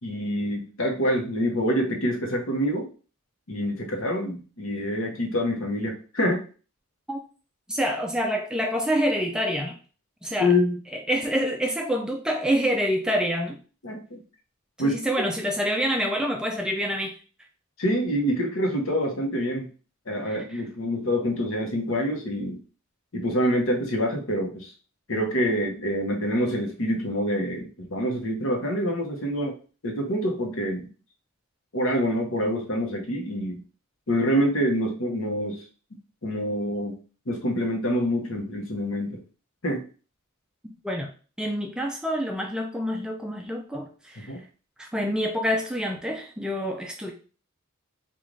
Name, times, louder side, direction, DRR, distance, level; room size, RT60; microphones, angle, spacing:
voice 1, 0.0-2.9 3.5-6.4 10.4-10.7 13.8-14.2 14.8-15.0 17.8-19.7 20.1-22.6 23.1-24.7 25.1-29.6 29.8-30.9 31.7-33.6 34.1-35.6 36.2-37.0 37.3-39.2 39.6-39.8 44.3-44.4, equal, 65° left, 1 dB, 0.9 m, -26 dB
voice 2, 7.7-9.7 10.2-10.5 11.1-13.6 14.8-17.1 40.8-41.1 41.4-44.3 44.8-47.1, equal, 5° right, 2 dB, 0.3 m, -27 dB
3.1 x 2.4 x 3.8 m, 0.37 s
head